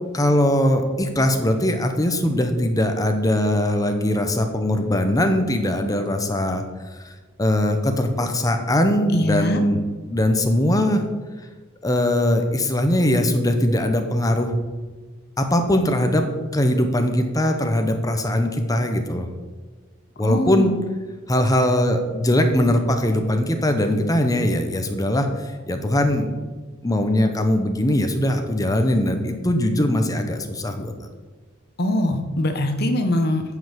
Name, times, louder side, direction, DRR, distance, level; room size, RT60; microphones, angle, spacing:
voice 1, 0.1-6.6 7.4-9.8 10.1-11.0 11.8-14.5 15.4-16.3 16.5-19.3 20.2-20.7 21.3-25.3 25.7-26.3 26.8-30.9, left 1 dB, 15° left, 5 dB, 1.0 m, -21 dB
voice 2, 9.1-9.6 20.2-20.7 31.8-33.4, left 1 dB, 50° left, 6 dB, 1.1 m, -22 dB
9.6 x 5.5 x 7.4 m, 1.3 s
head